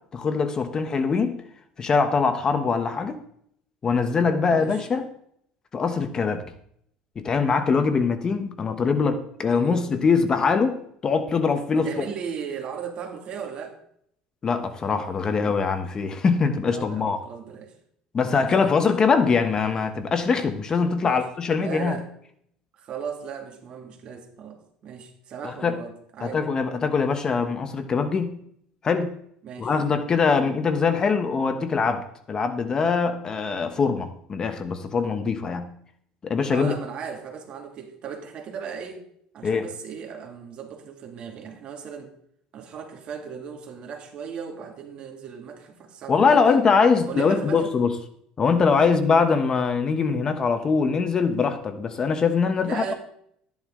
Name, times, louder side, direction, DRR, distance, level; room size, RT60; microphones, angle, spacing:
voice 1, 0.1-1.4 1.8-3.2 3.8-5.0 5.7-6.4 7.2-12.1 14.4-17.2 18.1-22.0 25.4-25.8 26.2-28.4 28.8-29.2 29.6-35.7 36.2-36.8 39.4-39.7 46.1-47.9 48.4-52.9, left 5 dB, 30° left, 9 dB, 1.1 m, -23 dB
voice 2, 4.5-4.8 9.5-9.9 11.7-13.8 16.7-17.7 18.2-19.1 21.0-21.2 21.6-22.1 22.7-26.4 29.4-29.7 36.5-39.0 39.3-42.1 42.5-46.6 47.1-47.7 48.8-48.9 52.6-52.9, right 7 dB, 45° right, 4 dB, 2.3 m, -37 dB
13.0 x 10.5 x 3.8 m, 0.67 s
cardioid pair, 135°, 3 cm